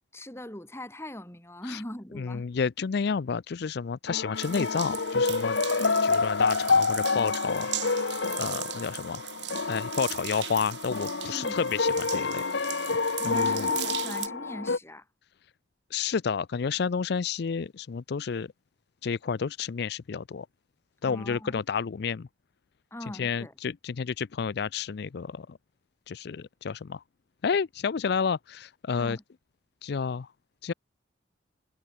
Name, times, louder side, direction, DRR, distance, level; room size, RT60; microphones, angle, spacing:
voice 1, 0.1-2.4 11.3-11.6 13.2-15.1 21.0-21.6 22.9-23.5 29.0-29.2, left 1 dB, 15° left, 3.9 m, -41 dB
voice 2, 2.2-5.6 6.0-8.0 8.4-9.3 9.7-12.4 13.2-13.7 15.9-18.5 19.0-20.5 21.0-22.3 23.2-25.6 26.1-27.0 27.4-29.2 29.8-30.3 30.6-30.7, left 6 dB, 60° left, 0.4 m, -30 dB
sound 1, 4.1-14.8, left 4 dB, 80° left, 1.2 m, -28 dB
sound 2, 4.4-14.3, right 14 dB, 65° right, 1.0 m, -39 dB
head